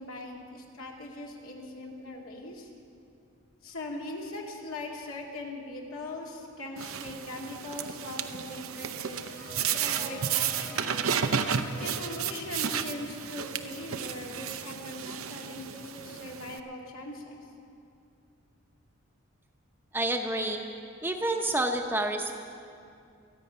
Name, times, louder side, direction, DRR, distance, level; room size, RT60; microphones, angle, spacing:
voice 1, 0.0-2.7 3.6-9.2 9.7-11.0 11.8-17.4, left 1 dB, 85° left, -1 dB, 2.3 m, -40 dB
sound 1, 6.8-16.6, right 7 dB, 80° right, 0.7 m, -33 dB
sound 2, 9.1-14.3, equal, 40° left, 1.4 m, -47 dB
voice 2, 19.9-20.6 21.0-22.3, right 1 dB, 10° right, 3 dB, 0.8 m, -28 dB
26.5 x 9.0 x 5.6 m, 2.5 s
head